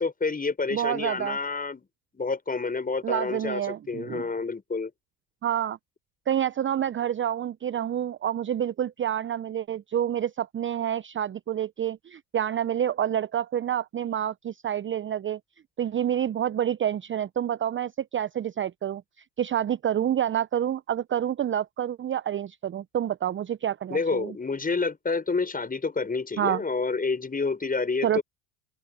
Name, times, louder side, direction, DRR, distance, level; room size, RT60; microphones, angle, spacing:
voice 1, 0.0-1.9 2.1-4.9 23.9-28.2, left 4 dB, 15° left, 6.8 m, -28 dB
voice 2, 0.7-1.4 3.0-4.2 5.4-5.8 6.3-15.4 15.8-19.0 19.4-24.3 26.4-26.6 28.0-28.2, right 10 dB, 25° right, 0.8 m, -28 dB
open air
hypercardioid pair, 80°, 49 cm